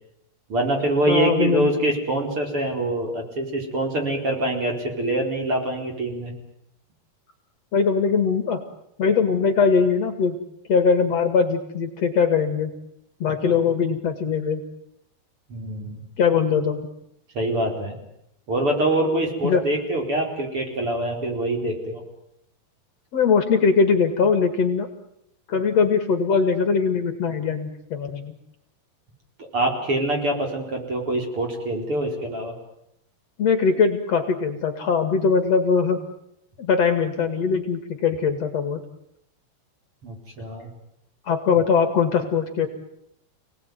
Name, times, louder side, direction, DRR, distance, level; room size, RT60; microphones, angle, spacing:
voice 1, 0.5-6.3 15.5-16.0 17.4-18.0 18.5-22.0 29.5-32.5 40.0-40.7, right 1 dB, 40° right, 2 dB, 5.3 m, -25 dB
voice 2, 1.1-1.7 7.7-8.6 9.0-10.4 10.7-12.7 13.2-14.6 16.2-16.9 19.4-19.6 23.1-24.9 25.5-28.3 33.4-36.0 36.6-38.8 41.3-42.7, left 5 dB, 50° left, 7 dB, 3.0 m, -21 dB
29.5 x 19.0 x 9.5 m, 0.79 s
omnidirectional pair, 3.9 m